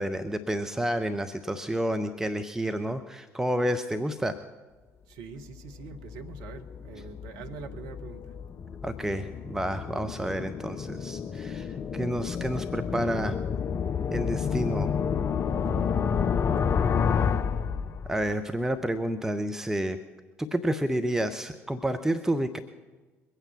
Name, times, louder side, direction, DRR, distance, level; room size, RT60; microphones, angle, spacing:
voice 1, 0.0-4.4 8.8-13.4 14.1-14.9 18.0-20.0 20.4-22.6, right 1 dB, 5° right, 8 dB, 0.9 m, -30 dB
voice 2, 5.1-8.3 15.6-16.0, right 4 dB, 60° right, 6 dB, 1.3 m, -43 dB
sound 1, 5.5-18.4, left 6 dB, 35° left, 0.6 m, -30 dB
22.5 x 9.0 x 5.9 m, 1.3 s
figure-of-eight pair, 55°, 8 cm